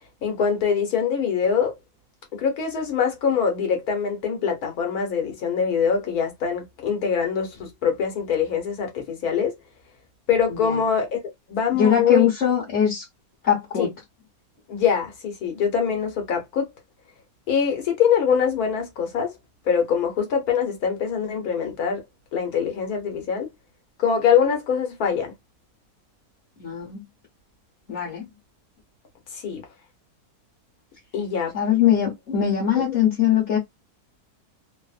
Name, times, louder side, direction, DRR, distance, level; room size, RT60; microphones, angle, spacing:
voice 1, 0.2-1.7 2.3-9.5 10.3-11.2 11.5-12.3 13.8-13.9 14.7-16.7 17.5-19.3 19.7-22.0 22.3-23.5 24.0-25.3 29.3-29.6 31.1-31.5 32.8-32.9, left 7 dB, 75° left, 1.4 m, -23 dB
voice 2, 11.7-13.0 13.4-13.9 26.6-27.0 27.9-28.2 31.5-33.6, left 9 dB, 45° left, 1.3 m, -21 dB
3.1 x 2.1 x 2.4 m
omnidirectional pair, 1.6 m